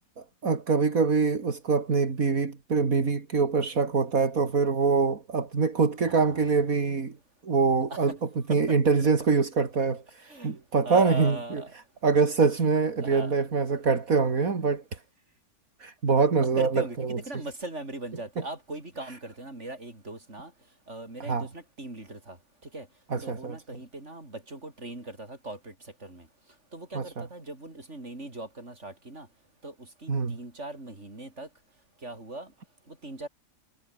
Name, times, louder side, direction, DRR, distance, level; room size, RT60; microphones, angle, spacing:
voice 1, 0.2-7.2 7.4-15.0 15.8-17.4 19.0-19.2 21.2-21.5 23.1-23.6 26.9-27.3 30.1-30.4, right 4 dB, 75° right, 2.9 m, -25 dB
voice 2, 6.1-6.4 7.9-8.1 8.5-8.8 10.3-10.5 10.8-11.7 13.0-13.3 16.6-20.5 20.9-22.4 22.7-22.9 23.2-25.7 26.0-26.3 26.7-29.3 29.6-31.5 32.0-32.5 32.9-33.3, right 2 dB, 50° right, 6.2 m, -39 dB
omnidirectional pair, 1.5 m